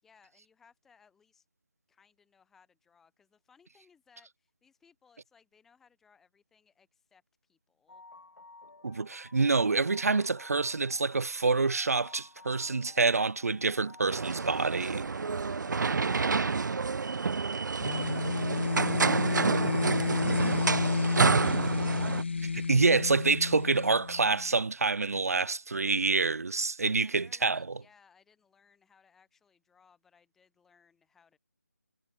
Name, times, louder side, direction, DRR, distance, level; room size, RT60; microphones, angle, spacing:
voice 1, 0.0-1.5 1.9-8.0 15.1-16.6 27.0-31.4, left 6 dB, 5° left, 5.5 m, -64 dB
sound 1, 7.9-16.8, left 3 dB, 75° left, 2.9 m, -53 dB
voice 2, 8.8-15.0 22.4-27.7, right 4 dB, 55° right, 1.1 m, -27 dB
sound 2, 14.1-22.2, right 4 dB, 85° right, 0.3 m, -29 dB
sound 3, 17.8-24.5, left 4 dB, 40° left, 1.1 m, -31 dB
figure-of-eight pair, 175°, 10 cm